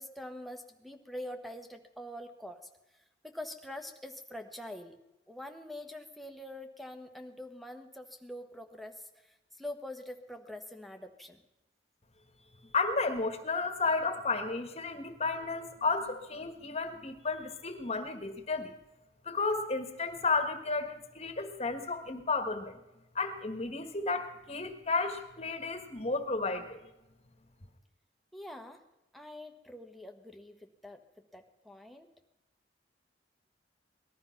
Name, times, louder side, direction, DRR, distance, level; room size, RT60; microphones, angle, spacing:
voice 1, 0.0-2.7 3.2-5.0 5.3-11.4 28.3-28.8 29.1-31.0 31.3-32.1, left 1 dB, ahead, 4 dB, 1.2 m, -45 dB
voice 2, 12.7-18.7 19.2-22.8 23.1-26.8, left 3 dB, 35° left, 7 dB, 1.5 m, -32 dB
19.5 x 12.5 x 5.8 m, 0.94 s
head